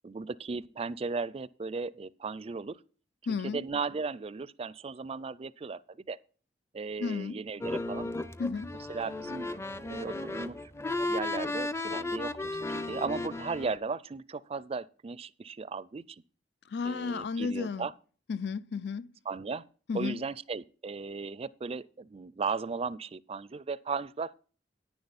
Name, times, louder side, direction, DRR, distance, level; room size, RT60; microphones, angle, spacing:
voice 1, 0.0-2.8 3.4-6.2 6.7-8.1 8.9-9.5 9.8-10.7 11.1-16.2 16.9-17.9 19.3-19.7 19.9-24.4, right 4 dB, 35° right, 0.4 m, -36 dB
voice 2, 3.3-3.6 7.0-7.4 8.4-8.7 16.7-17.9 18.3-19.1 19.9-20.2, left 5 dB, 70° left, 0.5 m, -33 dB
sound 1, 7.6-13.8, left 2 dB, 15° left, 0.6 m, -35 dB
10.5 x 10.0 x 4.1 m
head